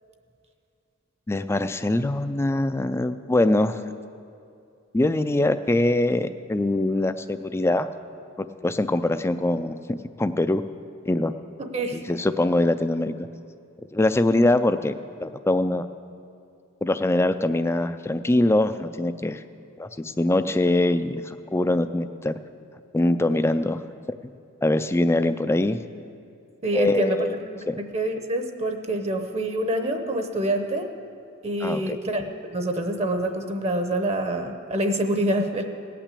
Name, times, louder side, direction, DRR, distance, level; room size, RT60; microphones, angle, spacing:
voice 1, 1.3-3.8 4.9-7.9 8.4-10.6 11.1-11.3 11.9-13.3 13.9-14.9 15.2-15.9 16.8-19.4 19.8-22.3 22.9-23.8 24.6-25.8 26.7-27.4 27.7-27.8 31.6-32.0, left 2 dB, 10° left, 11 dB, 0.3 m, -23 dB
voice 2, 11.6-12.0 26.6-27.3 27.9-30.9 31.4-32.2 32.5-35.6, right 1 dB, 30° right, 6 dB, 0.8 m, -26 dB
18.0 x 6.0 x 8.3 m, 2.5 s
head